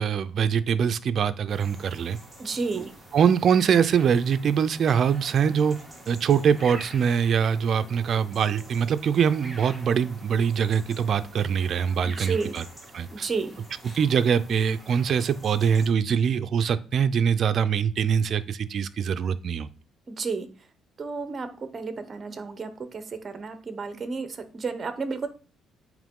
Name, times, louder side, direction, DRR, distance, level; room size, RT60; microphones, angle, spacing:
voice 1, 0.0-2.2 2.8-2.9 3.1-5.8 6.1-12.6 12.9-13.3 13.9-19.7, right 7 dB, 50° right, 12 dB, 0.4 m, -23 dB
sound 1, 1.5-15.9, right 1 dB, ahead, 1.6 m, -46 dB
voice 2, 2.4-2.9 12.0-12.6 13.1-13.5 20.1-20.5 21.0-25.3, right 4 dB, 35° right, 10 dB, 0.8 m, -32 dB
8.8 x 3.1 x 3.7 m, 0.36 s
cardioid pair, 120°, 0 cm